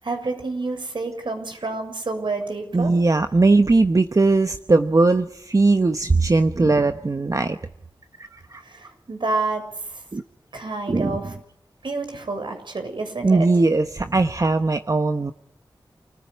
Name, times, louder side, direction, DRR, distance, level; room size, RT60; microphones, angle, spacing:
voice 1, 0.0-2.9 8.6-9.6 9.9-10.0 10.5-11.3 11.8-13.5, right 3 dB, 70° right, 5 dB, 6.8 m, -29 dB
voice 2, 2.7-7.6 8.2-8.6 10.1-10.2 10.9-11.2 13.2-15.3, right 3 dB, 40° right, 9 dB, 1.0 m, -19 dB
28.5 x 16.0 x 9.7 m, 0.71 s
wide cardioid pair, 60°, 9 cm